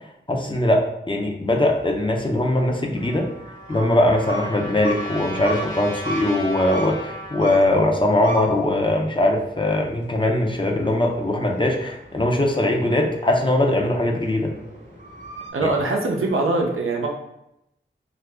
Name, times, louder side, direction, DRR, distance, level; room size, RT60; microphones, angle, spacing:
voice 1, 0.3-3.3 3.7-14.5, left 1 dB, 25° left, 1 dB, 0.5 m, -21 dB
sound 1, 1.5-15.5, right 2 dB, 40° right, 0.9 m, -39 dB
Trumpet, 2.9-7.6, equal, 75° left, 0.7 m, -36 dB
voice 2, 15.5-17.1, right 2 dB, 90° right, 0 dB, 0.6 m, -22 dB
2.7 x 2.5 x 3.3 m, 0.84 s
wide cardioid pair, 50°, 21 cm